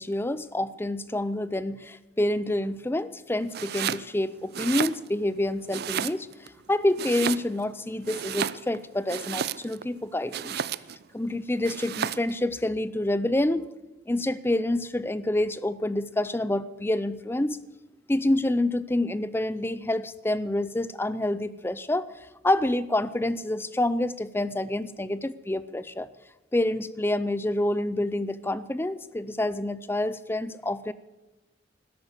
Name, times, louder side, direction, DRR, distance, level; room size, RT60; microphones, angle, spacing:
voice 1, 0.0-10.6 11.1-13.7 14.1-17.6 18.1-26.1 26.5-30.9, left 1 dB, 10° left, 16 dB, 0.5 m, -27 dB
Domestic sounds home sounds, 3.5-4.1 4.5-5.3 5.7-6.5 6.9-7.7 8.0-9.9 10.3-11.0 11.6-12.3, right 8 dB, 55° right, 0.4 m, -32 dB
13.0 x 11.0 x 8.1 m, 1.0 s
head